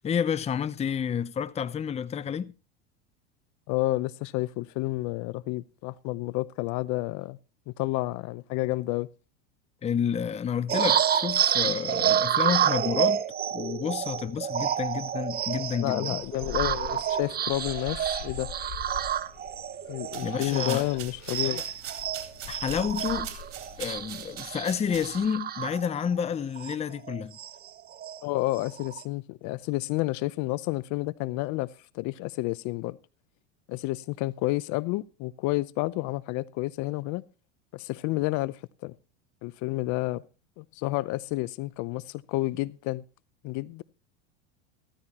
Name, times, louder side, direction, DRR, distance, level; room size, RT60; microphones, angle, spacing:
voice 1, 0.0-2.5 9.8-13.2 13.5-16.2 20.2-20.8 21.4-21.6 22.5-23.3 23.8-27.4, left 7 dB, 20° left, 0.7 m, -30 dB
voice 2, 3.7-7.4 7.7-9.1 15.8-18.5 19.9-21.6 28.2-31.7 31.9-33.0 33.7-37.2 37.7-38.9 39.4-40.2 40.6-43.0 43.4-43.8, left 19 dB, 50° left, 0.7 m, -30 dB
sound 1, 10.7-21.0 21.3-26.2 26.6-26.8 27.0-28.2 28.6-29.0, right 9 dB, 25° right, 0.8 m, -29 dB
sound 2, 16.2-24.3, left 7 dB, 70° left, 2.9 m, -43 dB
sound 3, 20.0-25.4, right 11 dB, 80° right, 3.9 m, -43 dB
15.5 x 14.0 x 3.0 m
supercardioid pair, 115°, 36 cm